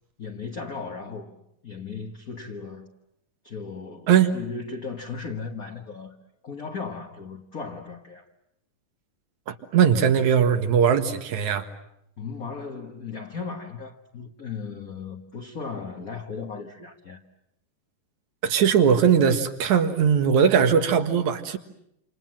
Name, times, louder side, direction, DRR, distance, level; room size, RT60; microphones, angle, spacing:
voice 1, 0.2-2.9 3.4-6.2 6.4-8.3 12.2-17.2, left 5 dB, 40° left, 1.3 m, -36 dB
voice 2, 4.1-4.4 9.5-11.7 18.4-21.6, right 7 dB, 70° right, 3.0 m, -20 dB
28.5 x 27.5 x 7.6 m
omnidirectional pair, 3.5 m